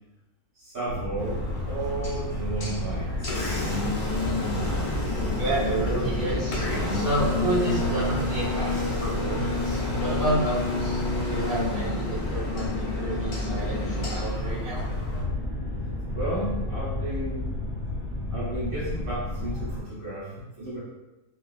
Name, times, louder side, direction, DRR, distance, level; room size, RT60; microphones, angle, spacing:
voice 1, 0.5-3.8 16.1-17.5 18.3-20.8, right 2 dB, 60° right, -10 dB, 1.6 m, -33 dB
sound 1, 0.9-19.8, left 1 dB, 20° left, 1.1 m, -31 dB
Engine, 1.2-15.2, left 3 dB, 70° left, 0.3 m, -31 dB
voice 2, 5.3-14.9, right 1 dB, 40° right, -11 dB, 1.2 m, -30 dB
2.9 x 2.4 x 2.4 m, 1.0 s
omnidirectional pair, 1.6 m